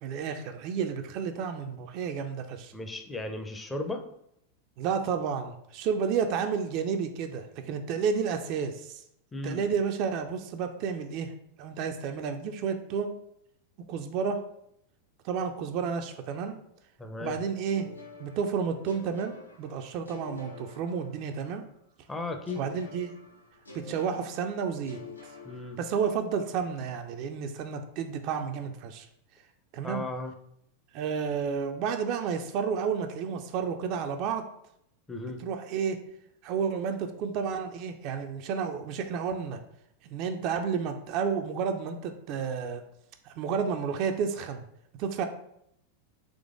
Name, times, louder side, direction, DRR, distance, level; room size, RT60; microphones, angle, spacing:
voice 1, 0.0-2.7 4.8-9.0 9.4-11.3 11.6-13.1 13.9-14.4 15.2-16.6 17.2-17.9 18.2-21.6 22.5-23.1 23.7-25.0 25.8-29.1 29.7-30.0 30.9-34.4 35.4-36.0 36.4-39.6 40.0-42.8 43.3-44.6 45.0-45.3, right 6 dB, 40° right, 6 dB, 0.4 m, -31 dB
voice 2, 2.7-4.1 9.3-9.6 17.0-17.4 22.1-22.6 25.4-25.8 29.8-30.3 35.1-35.4, left 2 dB, 10° left, 5 dB, 0.5 m, -35 dB
sound 1, 17.7-21.6 22.4-26.3, left 4 dB, 85° left, 0.8 m, -48 dB
3.9 x 3.1 x 3.5 m, 0.75 s
figure-of-eight pair, 90°, 0 cm